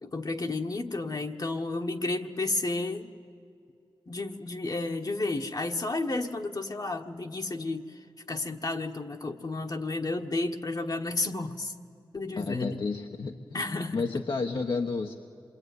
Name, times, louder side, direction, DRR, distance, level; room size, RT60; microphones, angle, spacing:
voice 1, 0.0-3.1 4.1-8.0 8.3-11.7 12.1-12.8 13.5-14.2, left 2 dB, 45° left, 3 dB, 1.4 m, -32 dB
voice 2, 12.4-13.4 13.9-15.1, left 4 dB, 60° left, 3 dB, 1.2 m, -31 dB
27.5 x 22.5 x 9.6 m, 2.5 s
wide cardioid pair, 70°, 9 cm